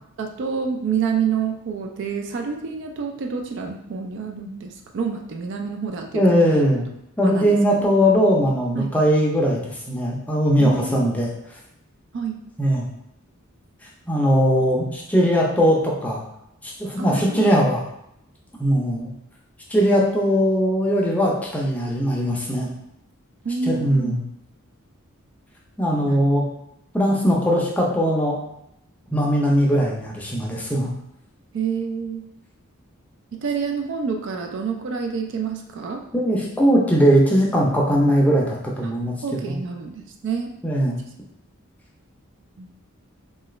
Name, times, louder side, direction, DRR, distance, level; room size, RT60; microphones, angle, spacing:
voice 1, 0.2-6.2 7.2-7.9 8.8-8.9 10.6-11.0 12.1-12.4 17.0-17.5 23.4-24.2 26.0-26.3 31.5-32.3 33.3-36.0 38.8-38.9 39.2-40.5 42.6-42.7, right 6 dB, 55° right, 3 dB, 0.3 m, -28 dB
voice 2, 6.1-6.9 7.2-11.3 12.6-12.9 14.1-16.2 16.6-17.8 18.6-19.1 19.7-22.7 23.6-24.2 25.8-26.4 26.9-28.4 29.1-30.9 36.1-39.6 40.6-41.0, equal, 5° left, -3 dB, 0.5 m, -20 dB
2.8 x 2.4 x 3.0 m, 0.79 s
head